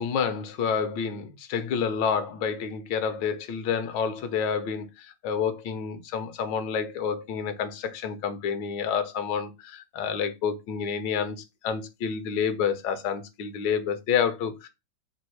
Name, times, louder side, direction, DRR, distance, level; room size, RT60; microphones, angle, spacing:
voice 1, 0.0-14.7, left 7 dB, 80° left, 1.4 m, -29 dB
3.5 x 2.7 x 4.5 m
omnidirectional pair, 1.9 m